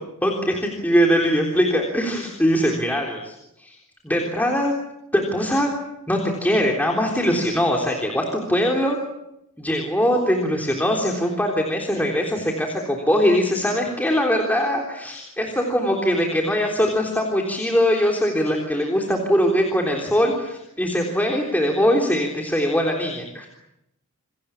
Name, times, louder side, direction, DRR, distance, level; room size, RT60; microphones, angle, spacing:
voice 1, 0.2-3.8 4.0-4.7 5.1-5.7 6.1-9.0 9.6-23.5, equal, 10° left, 0 dB, 3.6 m, -21 dB
28.5 x 24.0 x 7.3 m, 0.84 s
head